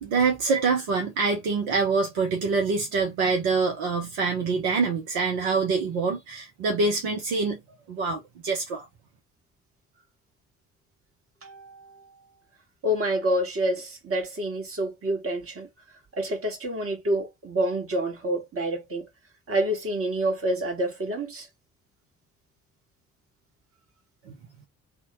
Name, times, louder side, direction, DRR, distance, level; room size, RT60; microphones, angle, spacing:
voice 1, 0.0-7.6 7.9-8.9 24.3-24.4, right 4 dB, 65° right, 0.8 m, -25 dB
voice 2, 11.4-12.2 12.8-15.7 16.2-19.1 19.5-21.5, right 1 dB, 30° right, 1.6 m, -28 dB
2.8 x 2.2 x 2.9 m
figure-of-eight pair, 50°, 42 cm